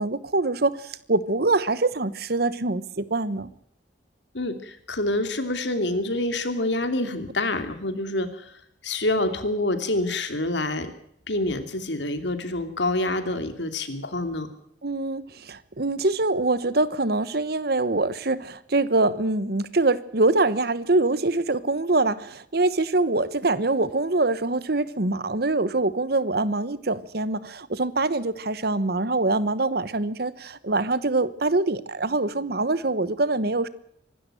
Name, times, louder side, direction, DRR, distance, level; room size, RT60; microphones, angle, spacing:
voice 1, 0.0-3.5 14.8-33.7, right 2 dB, 55° right, 17 dB, 1.1 m, -24 dB
voice 2, 4.3-8.5 8.8-10.9 11.3-14.5, left 2 dB, 75° left, 9 dB, 2.8 m, -27 dB
24.5 x 13.0 x 9.1 m, 0.70 s
head